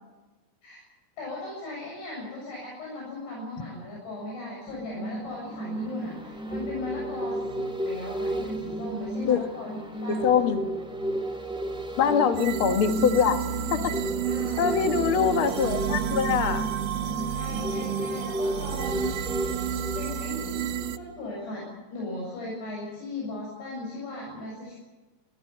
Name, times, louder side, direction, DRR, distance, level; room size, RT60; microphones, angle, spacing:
voice 1, 1.2-10.6 12.0-12.4 14.2-14.7 17.3-19.1 20.0-24.8, left 2 dB, 80° left, -3 dB, 9.5 m, -37 dB
sound 1, 4.7-20.9 21.3-21.4, right 1 dB, ahead, 2.0 m, -33 dB
voice 2, 10.1-10.6 12.0-13.4 13.7-13.9 14.6-16.7, left 7 dB, 65° left, 7 dB, 1.3 m, -23 dB
sound 2, 12.3-21.0, right 10 dB, 70° right, 2.9 m, -31 dB
25.5 x 16.5 x 8.5 m, 1.2 s
omnidirectional pair, 4.7 m